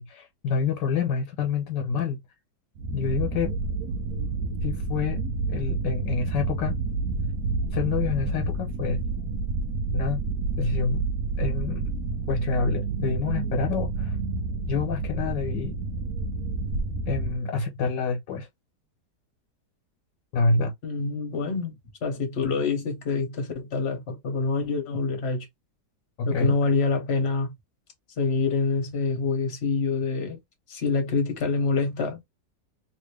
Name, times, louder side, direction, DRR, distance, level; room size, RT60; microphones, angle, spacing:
voice 1, 0.0-2.2 2.9-3.6 4.6-5.2 5.5-6.7 7.7-9.0 9.9-10.2 10.6-11.1 11.4-11.9 12.3-14.2 14.7-15.7 17.1-18.5 20.3-20.7 26.2-26.5, left 5 dB, 85° left, 1.6 m, -27 dB
sound 1, 2.8-17.4, right 3 dB, 65° right, 0.9 m, -29 dB
voice 2, 20.8-25.5 26.3-27.5 28.2-30.4 30.7-32.2, left 4 dB, 40° left, 1.4 m, -26 dB
3.1 x 2.9 x 3.2 m
omnidirectional pair, 1.9 m